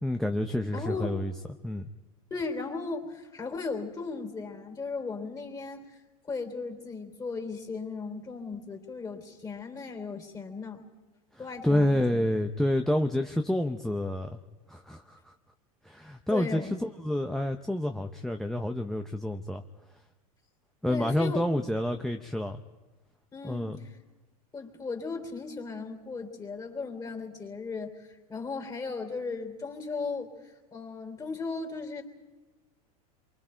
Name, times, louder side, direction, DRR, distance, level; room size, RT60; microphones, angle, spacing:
voice 1, 0.0-1.3 1.6-1.9 11.3-14.4 14.7-15.3 15.8-19.6 20.8-22.6 23.4-23.8, left 1 dB, ahead, 5 dB, 0.7 m, -29 dB
voice 2, 0.7-1.2 2.3-6.0 6.3-10.8 11.4-12.3 16.3-16.7 20.9-21.4 23.3-23.8 24.5-28.0 28.3-30.3 30.7-32.0, left 4 dB, 20° left, 3 dB, 3.6 m, -36 dB
28.5 x 23.5 x 4.5 m, 1.2 s
supercardioid pair, 115°, 19 cm